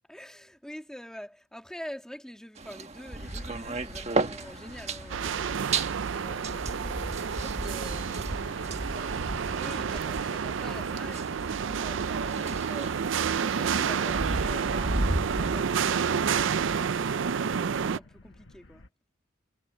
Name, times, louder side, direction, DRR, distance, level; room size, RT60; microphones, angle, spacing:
voice 1, 0.1-5.5 6.1-13.0 13.3-14.9 15.4-18.9, equal, 5° left, 1.8 m, -46 dB
sound 1, 2.6-15.6, right 2 dB, 35° right, 1.4 m, -35 dB
sound 2, 3.2-18.9, left 2 dB, 75° left, 1.5 m, -50 dB
sound 3, 5.1-18.0, right 6 dB, 85° right, 0.5 m, -29 dB
head